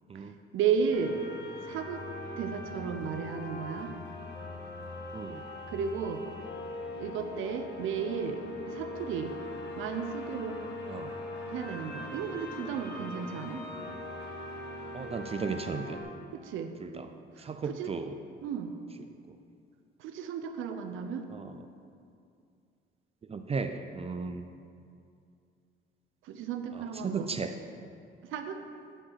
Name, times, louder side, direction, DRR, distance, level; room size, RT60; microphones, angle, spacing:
voice 1, 0.5-1.2 1.6-2.0 2.4-3.9 5.7-6.2 7.0-9.3 9.8-10.6 11.5-13.6 16.3-17.0 17.4-17.9 18.4-18.8 20.0-21.3 26.2-27.3 28.2-28.6, right 6 dB, 90° right, 7 dB, 0.6 m, -34 dB
sound 1, 0.9-16.0, left 2 dB, 60° left, 1.6 m, -41 dB
voice 2, 5.1-5.4 10.9-11.1 14.9-16.0 16.8-17.1 17.4-18.2 21.3-21.5 23.3-24.4 26.7-27.5, right 5 dB, 30° right, 7 dB, 0.4 m, -35 dB
8.8 x 5.0 x 5.7 m, 2.4 s
cardioid pair, 90°, 20 cm